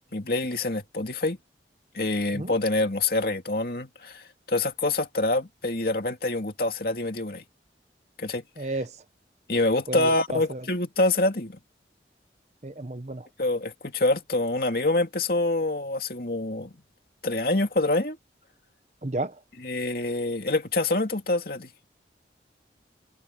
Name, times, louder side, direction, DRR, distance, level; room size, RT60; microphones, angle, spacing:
voice 1, 0.0-1.4 1.9-7.4 8.2-8.4 9.5-11.6 13.4-16.7 17.2-18.2 19.6-21.8, left 2 dB, 55° left, 2.6 m, -26 dB
voice 2, 8.6-9.0 9.9-10.6 12.6-13.3 19.0-19.4, right 2 dB, 40° right, 1.0 m, -32 dB
head